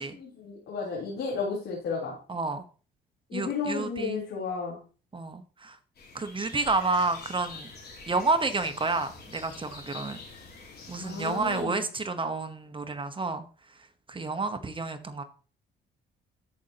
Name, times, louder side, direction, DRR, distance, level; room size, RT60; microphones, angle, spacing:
voice 1, 0.0-2.1 3.3-4.8 11.0-11.9, left 5 dB, 80° left, -5 dB, 3.6 m, -33 dB
voice 2, 2.3-2.6 3.3-4.3 5.1-5.8 6.1-7.7 8.1-10.2 10.9-13.4 14.1-15.2, right 3 dB, 25° right, 9 dB, 1.0 m, -30 dB
sound 1, 6.0-11.6, left 4 dB, 55° left, 3.4 m, -46 dB
13.0 x 5.3 x 2.9 m, 0.37 s
cardioid pair, 90°, 20 cm